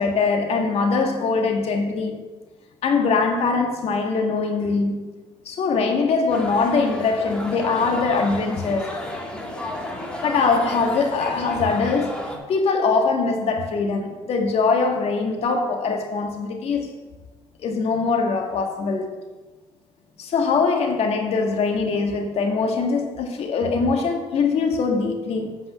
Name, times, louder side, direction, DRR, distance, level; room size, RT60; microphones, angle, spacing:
voice 1, 0.0-2.3 2.8-5.0 5.5-9.0 10.2-16.9 17.6-19.1 20.2-25.6, left 4 dB, 55° left, 1.8 m, -22 dB
sound 1, 6.3-12.4, left 1 dB, 10° left, 2.4 m, -33 dB
8.6 x 5.4 x 6.9 m
hypercardioid pair, 60°, 12 cm